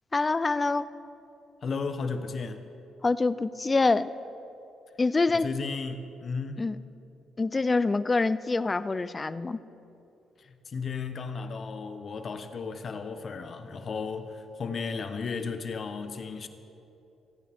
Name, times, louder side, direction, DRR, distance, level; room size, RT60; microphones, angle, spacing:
voice 1, 0.1-0.9 3.0-4.1 5.0-5.5 6.6-6.8 7.4-9.6, left 3 dB, 25° left, 15 dB, 0.4 m, -25 dB
voice 2, 1.6-2.7 5.3-6.7 10.4-16.5, left 4 dB, 45° left, 8 dB, 1.0 m, -34 dB
26.5 x 9.3 x 3.6 m, 2.8 s
cardioid pair, 90°, 0 cm